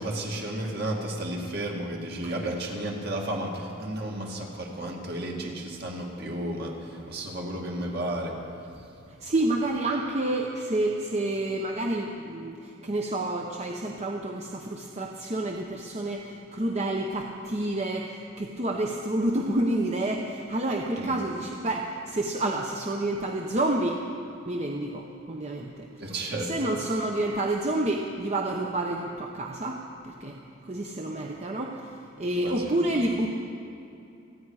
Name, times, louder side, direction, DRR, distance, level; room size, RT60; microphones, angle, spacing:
voice 1, 0.0-8.9 20.9-21.2 26.0-26.5 32.4-32.8, right 1 dB, 55° right, 0 dB, 2.2 m, -33 dB
voice 2, 9.2-24.0 24.5-25.9 26.5-33.3, right 1 dB, 35° right, 1 dB, 0.8 m, -29 dB
28.5 x 9.7 x 4.8 m, 2.7 s
head